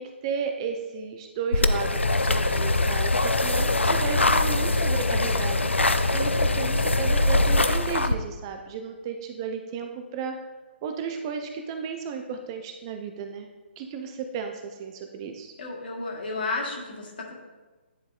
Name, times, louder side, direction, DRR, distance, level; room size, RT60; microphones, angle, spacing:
voice 1, 0.0-5.7 6.1-10.4 10.8-13.5 13.8-15.5, right 6 dB, 25° right, 5 dB, 0.4 m, -34 dB
sound 1, 1.5-8.1, left 2 dB, 80° left, 0.4 m, -22 dB
voice 2, 15.6-17.3, left 3 dB, 55° left, -1 dB, 1.5 m, -32 dB
10.0 x 4.0 x 2.4 m, 1.2 s
figure-of-eight pair, 135°, 6 cm